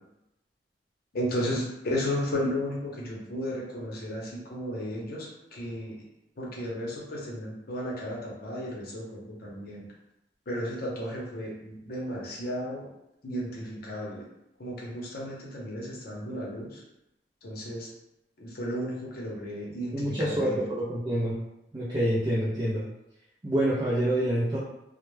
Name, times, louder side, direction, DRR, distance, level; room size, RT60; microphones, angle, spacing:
voice 1, 1.1-6.0 6.4-9.8 10.5-12.9 13.2-14.3 14.6-16.8 17.4-17.9 18.4-20.6, equal, 60° left, -4 dB, 0.7 m, -34 dB
voice 2, 19.9-21.4 21.7-22.9 23.4-24.6, right 1 dB, 25° right, -8 dB, 0.4 m, -27 dB
2.2 x 2.1 x 3.1 m, 0.89 s
head